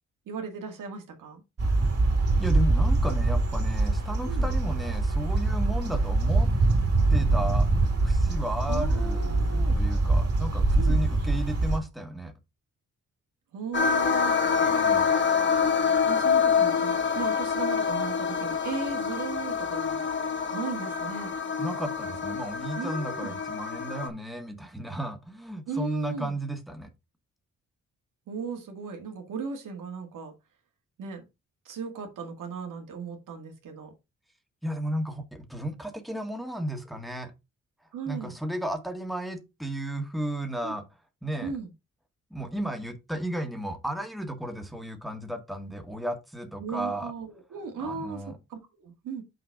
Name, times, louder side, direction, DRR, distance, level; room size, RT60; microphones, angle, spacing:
voice 1, 0.3-1.4 4.3-4.5 8.7-9.8 10.8-11.0 13.5-14.4 16.1-20.0 20.5-21.3 22.8-23.4 25.7-26.4 28.3-30.3 31.0-31.2 31.7-33.9 37.9-38.4 40.6-40.7 41.4-41.7 46.6-49.2, right 5 dB, 90° right, 2.1 m, -37 dB
sound 1, 1.6-11.8, right 2 dB, 50° right, 2.8 m, -24 dB
voice 2, 2.4-6.5 7.1-7.7 8.0-12.3 14.6-15.1 21.6-26.9 34.6-37.3 38.1-40.9 41.2-41.5 42.3-47.1 47.8-48.4, right 1 dB, ahead, 1.7 m, -34 dB
sound 2, 13.7-24.1, left 6 dB, 35° left, 1.4 m, -26 dB
6.5 x 4.4 x 4.7 m
cardioid pair, 80°, 31 cm